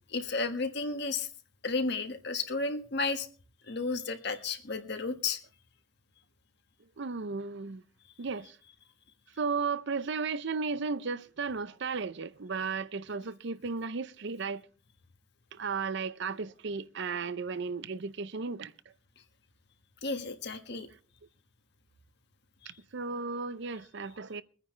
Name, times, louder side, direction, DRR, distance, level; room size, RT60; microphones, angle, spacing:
voice 1, 0.1-1.3 1.6-3.3 3.6-5.4 20.0-20.9 22.6-22.8, left 3 dB, 55° left, 1.6 m, -33 dB
voice 2, 7.0-7.8 8.2-8.6 9.4-14.6 15.5-18.7 20.7-20.8 22.7-24.4, right 4 dB, 60° right, 0.6 m, -34 dB
23.0 x 9.7 x 3.3 m
head